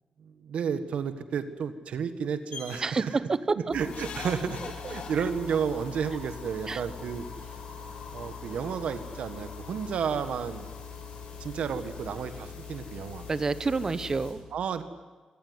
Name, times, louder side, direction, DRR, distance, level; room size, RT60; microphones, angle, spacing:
voice 1, 0.2-3.1 3.7-7.3 8.1-10.7 11.4-13.3 14.5-14.8, right 7 dB, 85° right, 10 dB, 1.5 m, -32 dB
sound 1, 2.5-2.8 3.9-5.6 6.8-6.9 7.2-7.3, left 5 dB, 70° left, 3.8 m, -41 dB
voice 2, 2.8-3.7 4.8-5.0 6.7-6.8 13.3-14.5, right 4 dB, 30° right, 14 dB, 0.9 m, -28 dB
sound 2, 3.7-14.3, left 6 dB, 90° left, 7.9 m, -42 dB
26.5 x 19.0 x 9.7 m, 1.3 s
wide cardioid pair, 160°, 2 cm